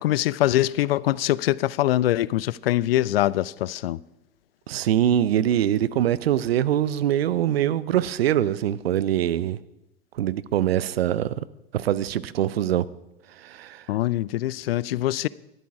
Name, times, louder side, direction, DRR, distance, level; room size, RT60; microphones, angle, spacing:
voice 1, 0.0-4.0 13.9-15.3, left 14 dB, 70° left, 0.4 m, -23 dB
voice 2, 4.7-9.6 10.1-11.4 11.7-12.8 13.4-13.8, right 11 dB, 75° right, 0.6 m, -23 dB
12.0 x 11.0 x 4.8 m
figure-of-eight pair, 80°, 31 cm